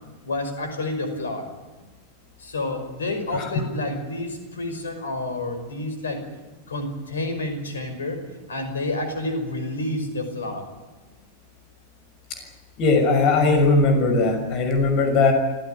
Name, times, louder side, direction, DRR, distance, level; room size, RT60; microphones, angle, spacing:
voice 1, 0.2-1.5 2.4-6.2 6.7-8.2 8.5-10.7, left 2 dB, 70° left, 7 dB, 5.5 m, -29 dB
voice 2, 12.8-15.3, left 3 dB, 40° left, 6 dB, 6.2 m, -19 dB
26.0 x 16.5 x 9.3 m, 1.2 s
figure-of-eight pair, 90°, 0 cm